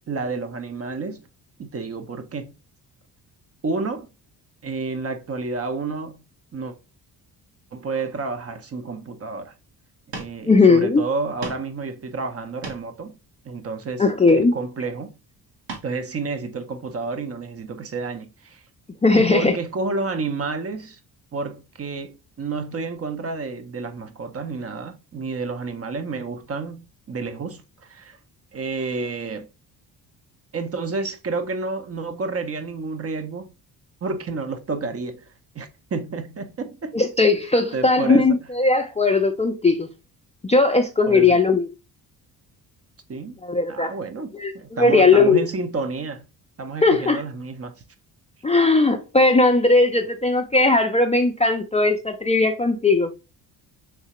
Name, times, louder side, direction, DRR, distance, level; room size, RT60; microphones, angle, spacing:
voice 1, 0.1-1.3 1.6-2.5 3.6-4.1 4.6-6.2 6.5-6.7 7.7-9.6 10.1-13.1 13.4-14.1 14.3-15.1 15.8-18.6 19.1-21.0 21.3-28.2 28.5-29.5 30.5-33.5 34.0-35.3 35.5-37.0 37.7-38.4 41.1-41.4 43.1-43.4 43.7-46.2 46.6-47.7, right 4 dB, 35° right, 0.6 m, -30 dB
sound 1, 9.8-9.9 10.1-10.4 10.8-10.9 11.4-11.7 12.4-13.0 14.1-14.7 15.7-15.9 16.4-16.5, right 3 dB, 70° right, 1.3 m, -37 dB
voice 2, 10.5-11.0 14.0-14.5 19.0-19.5 36.9-39.9 40.4-41.7 43.4-43.9 44.4-45.5 46.8-47.2 48.4-53.1, left 3 dB, 15° left, 0.4 m, -18 dB
3.3 x 2.8 x 2.8 m
supercardioid pair, 60°, 44 cm